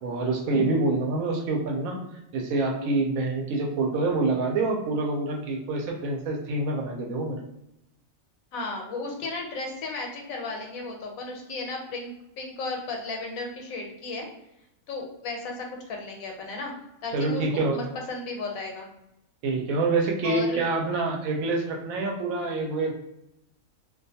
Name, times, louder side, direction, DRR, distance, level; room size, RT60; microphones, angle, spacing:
voice 1, 0.0-2.0 2.3-7.4 17.1-17.8 19.4-22.9, right 3 dB, 80° right, 1 dB, 1.0 m, -26 dB
voice 2, 8.5-14.3 14.9-16.7 17.0-18.9 20.2-20.7, left 3 dB, 85° left, 1 dB, 1.1 m, -34 dB
2.4 x 2.2 x 2.7 m, 0.86 s
omnidirectional pair, 1.4 m